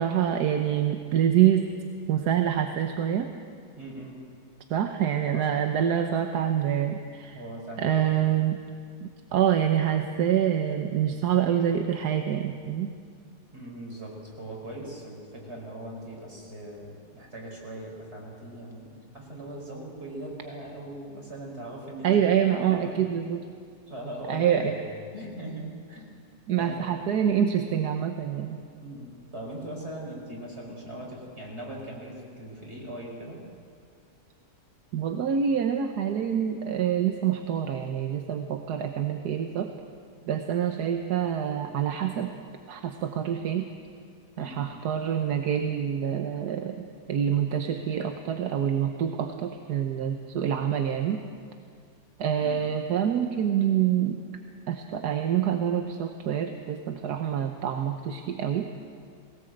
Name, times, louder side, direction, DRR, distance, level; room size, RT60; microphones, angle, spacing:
voice 1, 0.0-1.7 2.1-3.3 4.7-7.4 7.8-8.6 9.0-12.9 22.0-23.4 24.3-24.7 26.5-28.6 34.9-39.7 40.3-42.3 42.7-43.7 44.4-46.8 47.1-51.2 52.2-54.2 54.7-58.7, right 9 dB, 85° right, 5 dB, 1.5 m, -26 dB
voice 2, 3.8-4.2 7.3-8.0 13.5-22.1 22.4-23.1 23.9-26.1 26.5-26.9 28.8-33.4 44.4-44.7, right 1 dB, 40° right, -2 dB, 5.4 m, -40 dB
21.0 x 18.0 x 7.8 m, 2.2 s
omnidirectional pair, 1.7 m